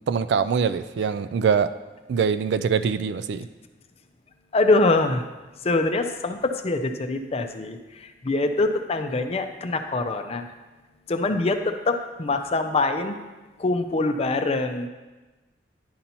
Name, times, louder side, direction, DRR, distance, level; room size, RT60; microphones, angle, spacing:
voice 1, 0.1-1.7 2.1-3.5, right 6 dB, 65° right, 12 dB, 0.3 m, -23 dB
voice 2, 4.5-5.2 5.6-10.5 11.1-13.2 13.6-14.9, left 2 dB, 35° left, 6 dB, 0.5 m, -24 dB
10.5 x 5.4 x 2.9 m, 1.2 s
head